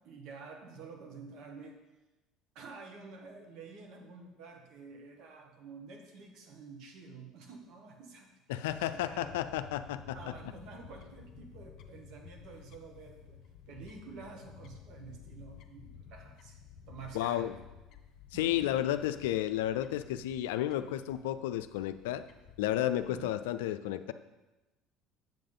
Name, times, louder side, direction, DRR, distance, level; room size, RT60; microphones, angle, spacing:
voice 1, 0.0-1.8 2.5-8.3 8.5-9.4 10.1-13.4 13.7-16.6 16.9-17.5 18.3-18.7 23.1-23.3, right 4 dB, 60° right, 2 dB, 1.5 m, -49 dB
voice 2, 8.5-10.3 17.1-17.6 18.3-22.2 22.6-24.1, left 12 dB, 75° left, 11 dB, 0.4 m, -32 dB
Fowl / Bird, 8.7-23.3, left 7 dB, 55° left, 0.8 m, -54 dB
7.7 x 7.3 x 3.8 m, 1.1 s
hypercardioid pair, 65°, 0 cm